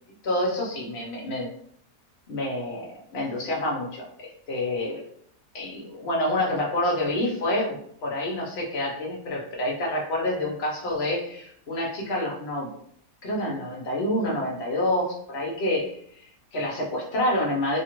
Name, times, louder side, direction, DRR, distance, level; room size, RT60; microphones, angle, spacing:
voice 1, 0.2-1.5 2.3-5.0 5.5-12.7 13.2-17.8, left 1 dB, 50° left, -2 dB, 0.8 m, -28 dB
2.8 x 2.4 x 2.9 m, 0.66 s
omnidirectional pair, 1.8 m